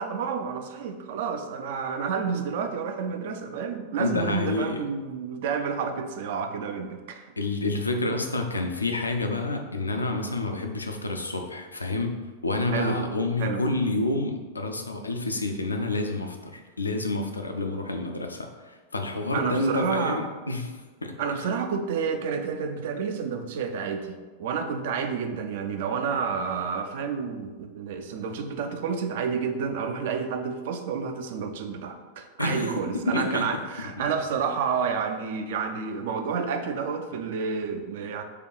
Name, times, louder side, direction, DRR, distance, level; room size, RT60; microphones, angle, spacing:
voice 1, 0.0-7.3 12.7-13.0 13.4-13.6 19.3-20.2 21.2-38.2, right 6 dB, 55° right, 7 dB, 0.4 m, -30 dB
voice 2, 4.0-4.8 7.4-21.4 32.4-33.5 34.0-34.1, left 2 dB, 80° left, 4 dB, 0.5 m, -29 dB
4.8 x 2.3 x 4.7 m, 1.3 s
figure-of-eight pair, 90°, 0 cm